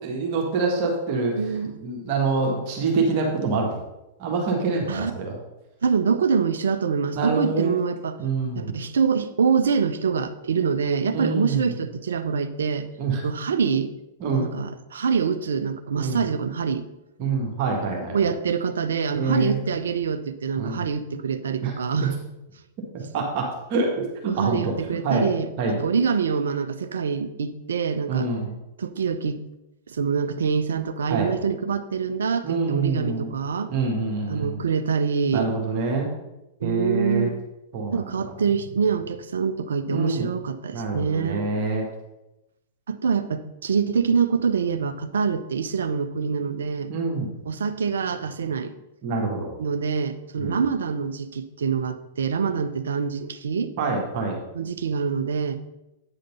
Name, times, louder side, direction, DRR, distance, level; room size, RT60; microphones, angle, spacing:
voice 1, 0.0-1.3 1.8-3.8 4.2-5.4 7.1-7.8 8.2-8.7 11.1-11.7 13.0-13.2 14.2-14.5 16.0-16.3 17.2-18.2 19.1-19.6 20.5-20.8 21.6-21.7 22.9-24.7 25.0-25.3 25.6-25.8 28.1-28.5 31.1-31.3 32.4-33.3 33.7-34.6 35.3-36.1 36.6-37.3 37.7-38.1 39.9-40.3 40.7-41.9 46.9-47.3 49.0-49.5 50.4-50.6 53.8-54.4, right 4 dB, 45° right, 0 dB, 1.8 m, -26 dB
voice 2, 1.3-1.8 4.9-5.1 5.8-8.2 8.5-12.9 13.2-13.9 14.3-16.8 18.1-22.1 24.2-28.3 28.8-29.4 29.9-33.7 34.3-35.5 36.6-37.3 37.9-41.5 42.9-46.9 47.5-48.7 49.6-53.7 54.5-55.6, right 6 dB, 65° right, 11 dB, 0.6 m, -25 dB
8.9 x 5.1 x 5.4 m, 0.94 s
figure-of-eight pair, 100°, 0 cm